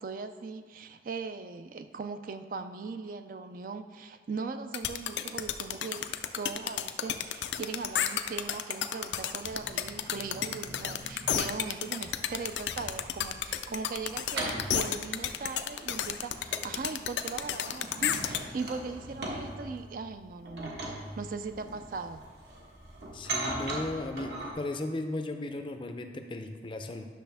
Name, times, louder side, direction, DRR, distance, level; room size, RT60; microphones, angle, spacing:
voice 1, 0.0-22.2, right 4 dB, 50° right, 9 dB, 0.4 m, -39 dB
sound 1, 4.7-18.4, left 9 dB, 80° left, 0.5 m, -31 dB
sound 2, 9.4-11.5 12.0-24.5, right 1 dB, 70° right, 1.4 m, -41 dB
voice 2, 23.1-27.1, left 2 dB, 30° left, 6 dB, 0.5 m, -36 dB
10.0 x 6.4 x 3.4 m, 1.5 s
head